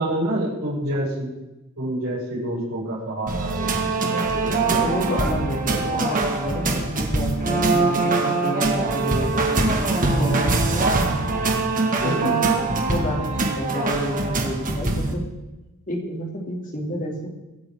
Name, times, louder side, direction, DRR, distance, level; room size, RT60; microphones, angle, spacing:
voice 1, 0.0-1.4 1.8-4.6 10.7-11.5 11.9-13.0, right 1 dB, 80° right, -10 dB, 5.7 m, -28 dB
sound 1, 3.3-15.1, right 3 dB, 40° right, 1.7 m, -23 dB
voice 2, 4.6-10.9 12.0-15.2 15.9-17.3, equal, 40° left, 0 dB, 2.7 m, -30 dB
24.5 x 9.0 x 3.7 m, 1.0 s
head